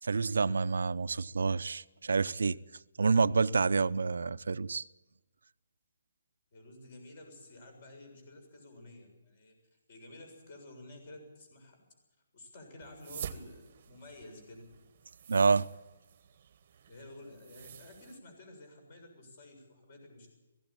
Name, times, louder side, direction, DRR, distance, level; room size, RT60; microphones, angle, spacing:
voice 1, 0.0-2.6 3.0-4.8 15.3-15.7, right 4 dB, 85° right, 0.6 m, -28 dB
voice 2, 6.5-9.6 9.9-11.8 12.3-14.7 16.9-20.3, left 1 dB, 35° left, 7.0 m, -51 dB
sound 1, 12.8-18.2, right 7 dB, 35° right, 1.1 m, -48 dB
18.0 x 16.5 x 8.8 m
hypercardioid pair, 170°, 0 cm